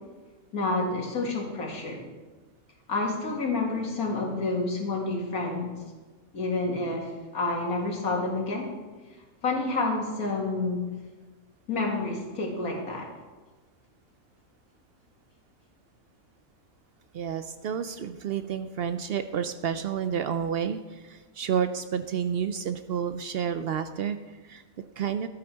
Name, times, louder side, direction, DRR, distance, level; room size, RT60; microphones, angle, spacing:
voice 1, 0.5-2.0 2.9-5.7 6.3-8.7 9.4-10.9 11.7-13.1, left 3 dB, 80° left, 0 dB, 2.4 m, -29 dB
voice 2, 17.1-25.3, right 8 dB, 70° right, 10 dB, 0.5 m, -30 dB
12.0 x 8.8 x 4.5 m, 1.3 s
omnidirectional pair, 1.5 m